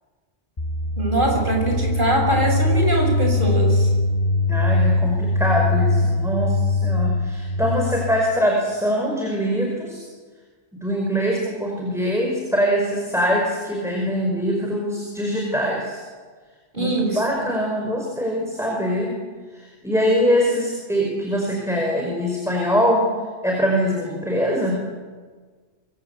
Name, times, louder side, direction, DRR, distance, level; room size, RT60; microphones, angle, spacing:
sound 1, 0.6-8.3, left 2 dB, 30° left, 1.6 m, -21 dB
voice 1, 1.0-3.9 16.7-17.5, right 1 dB, 45° right, 1 dB, 7.5 m, -22 dB
voice 2, 4.5-10.1 10.7-16.0 16.8-19.1 19.5-23.1 23.4-24.8, equal, ahead, -1 dB, 5.1 m, -23 dB
27.0 x 24.0 x 8.3 m, 1.5 s
omnidirectional pair, 1.2 m